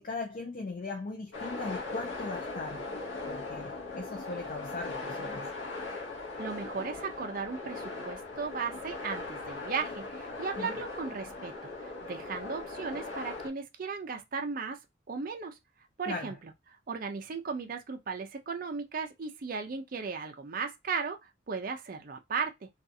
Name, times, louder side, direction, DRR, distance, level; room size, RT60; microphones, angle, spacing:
voice 1, 0.0-2.8 3.3-5.5 10.6-10.8 16.1-16.4, left 3 dB, 45° left, 0.5 m, -39 dB
sound 1, 1.3-13.5, left 3 dB, 80° left, 0.8 m, -39 dB
voice 2, 6.2-11.5 11.8-14.8 15.1-15.6 16.0-16.4 16.9-22.7, right 5 dB, 45° right, 0.4 m, -36 dB
2.5 x 2.4 x 2.6 m
head